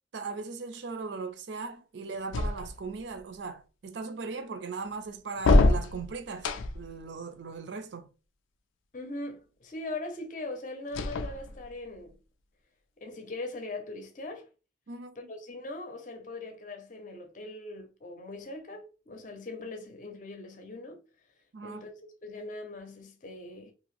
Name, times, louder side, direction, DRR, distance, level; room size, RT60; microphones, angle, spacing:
voice 1, 0.1-6.5 6.7-8.1 14.9-15.3 21.5-21.9, right 4 dB, 65° right, 0.4 m, -38 dB
sound 1, 2.3-3.1 5.4-7.0 10.9-11.9, left 2 dB, 85° left, 0.4 m, -25 dB
voice 2, 8.9-12.2 13.0-14.5 15.3-21.0 21.6-23.7, left 2 dB, 40° left, 0.6 m, -41 dB
2.7 x 2.5 x 3.1 m
head